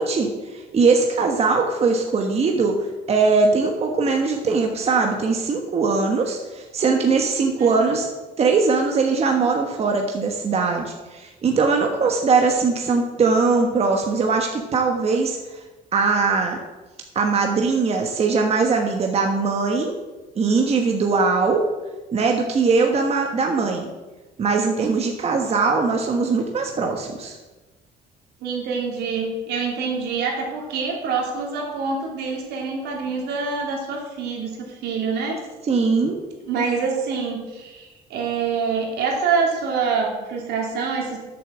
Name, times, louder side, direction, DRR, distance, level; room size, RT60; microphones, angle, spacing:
voice 1, 0.0-2.8 3.1-8.1 8.4-15.4 15.9-16.6 17.1-19.9 20.3-21.6 22.1-23.9 24.4-27.4 35.6-36.2, right 4 dB, 40° right, 2 dB, 1.3 m, -21 dB
voice 2, 7.6-8.0 28.4-35.4 36.5-41.2, right 5 dB, 80° right, 0 dB, 3.0 m, -26 dB
8.4 x 6.8 x 7.5 m, 1.2 s
cardioid pair, 110°, 17 cm